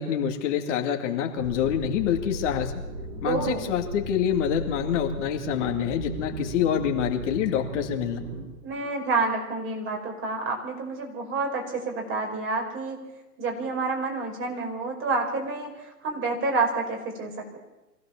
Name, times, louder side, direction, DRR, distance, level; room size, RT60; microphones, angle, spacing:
voice 1, 0.0-2.8 3.2-8.2, left 9 dB, 50° left, 4 dB, 2.5 m, -26 dB
sound 1, 1.4-8.4, right 1 dB, 75° right, 7.0 m, -36 dB
voice 2, 3.2-3.7 8.6-13.0 13.4-17.6, right 3 dB, 25° right, 2 dB, 5.2 m, -29 dB
24.0 x 16.0 x 7.2 m, 1.0 s
hypercardioid pair, 120°, 47 cm